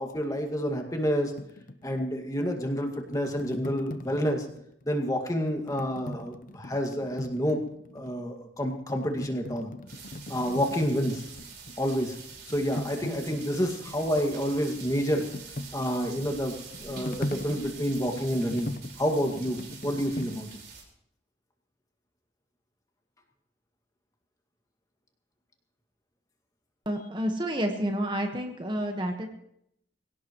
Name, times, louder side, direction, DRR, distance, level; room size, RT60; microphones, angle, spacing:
voice 1, 0.0-1.3 1.8-4.5 4.9-7.6 7.9-9.7 10.3-11.3 11.8-12.2 12.5-15.2 15.7-18.7 19.0-20.5, equal, 20° left, 3 dB, 2.0 m, -29 dB
sound 1, 1.4-4.8 5.5-8.2 8.6-11.9 12.1-20.4, left 1 dB, 45° left, 0.8 m, -40 dB
sound 2, 9.9-20.8, right 5 dB, 60° right, 4.7 m, -46 dB
voice 2, 26.8-29.3, equal, 25° right, 4 dB, 1.4 m, -29 dB
24.0 x 17.0 x 3.1 m, 0.74 s
head